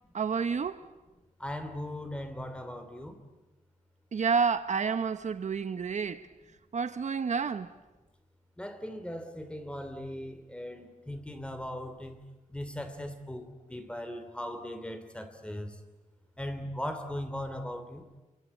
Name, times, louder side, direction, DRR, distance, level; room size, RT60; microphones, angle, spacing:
voice 1, 0.1-0.9 4.1-6.3 6.7-7.7, right 5 dB, 60° right, 1.0 m, -29 dB
voice 2, 1.4-3.2 8.6-12.2 12.5-15.8 16.4-18.1, left 1 dB, 10° left, 3.0 m, -38 dB
27.5 x 24.0 x 8.4 m
wide cardioid pair, 155°, 14 cm